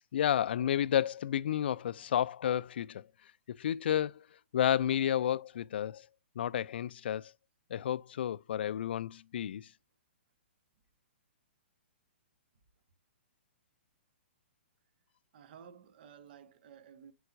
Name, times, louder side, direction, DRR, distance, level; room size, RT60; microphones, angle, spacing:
voice 1, 0.1-3.1 3.5-4.2 4.5-6.1 6.4-7.3 7.7-9.7, left 10 dB, 60° left, 0.4 m, -31 dB
voice 2, 15.3-17.1, right 7 dB, 55° right, 1.1 m, -54 dB
8.0 x 4.6 x 2.6 m
hypercardioid pair, 125°, 6 cm